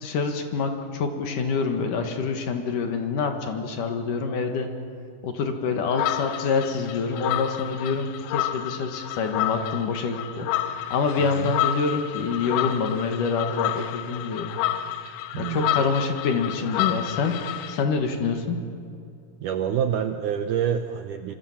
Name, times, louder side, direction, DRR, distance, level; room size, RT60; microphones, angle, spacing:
voice 1, 0.0-4.7 5.2-10.5 10.9-14.5 15.4-17.4 17.7-18.6, left 5 dB, 60° left, 5 dB, 3.0 m, -26 dB
sound 1, 5.9-17.8, left 12 dB, 75° left, 2.4 m, -30 dB
voice 2, 11.2-11.5 15.3-15.9 19.4-21.3, right 8 dB, 75° right, 7 dB, 1.9 m, -27 dB
26.5 x 25.0 x 7.3 m, 2.5 s
omnidirectional pair, 4.6 m